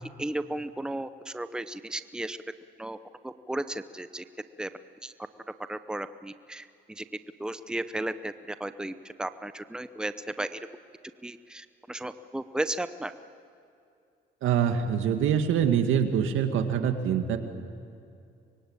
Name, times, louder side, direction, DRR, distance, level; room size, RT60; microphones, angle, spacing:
voice 1, 0.2-2.4 2.8-3.0 3.2-4.2 4.6-4.7 5.0-5.1 5.7-7.0 7.4-10.6 11.2-13.1, right 1 dB, 5° right, 11 dB, 0.8 m, -34 dB
voice 2, 14.4-17.4, right 8 dB, 85° right, 7 dB, 2.0 m, -25 dB
25.0 x 22.5 x 8.9 m, 2.5 s
cardioid pair, 90°, 20 cm